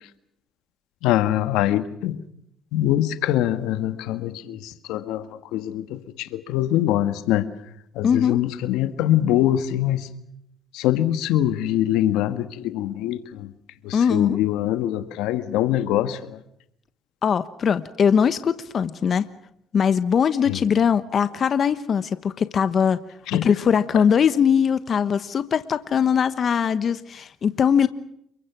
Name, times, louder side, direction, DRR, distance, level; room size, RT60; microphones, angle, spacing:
voice 1, 1.0-2.2 2.7-7.5 7.9-10.1 10.7-13.5 13.8-16.4 20.5-20.6 23.3-23.5, left 13 dB, 85° left, 11 dB, 1.6 m, -23 dB
voice 2, 8.0-8.4 13.9-14.4 17.2-19.3 19.7-23.0 23.4-27.9, left 7 dB, 50° left, 12 dB, 1.2 m, -21 dB
29.0 x 23.5 x 6.1 m, 0.75 s
supercardioid pair, 75°, 0 cm